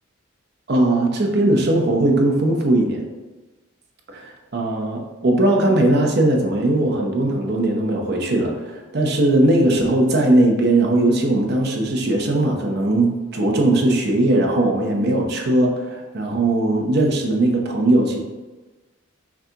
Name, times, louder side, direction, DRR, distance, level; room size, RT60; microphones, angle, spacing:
voice 1, 0.7-3.0 4.1-18.2, right 1 dB, 50° right, 1 dB, 0.7 m, -19 dB
5.9 x 2.3 x 2.8 m, 1.2 s
head